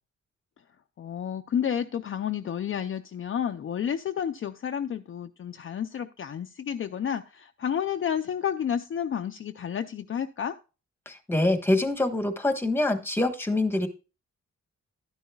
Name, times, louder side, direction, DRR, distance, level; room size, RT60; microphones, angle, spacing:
voice 1, 1.0-10.6, left 8 dB, 45° left, 8 dB, 0.5 m, -31 dB
voice 2, 11.1-13.9, left 2 dB, 10° left, 8 dB, 1.3 m, -25 dB
12.0 x 10.5 x 2.3 m, 0.32 s
wide cardioid pair, 135°, 29 cm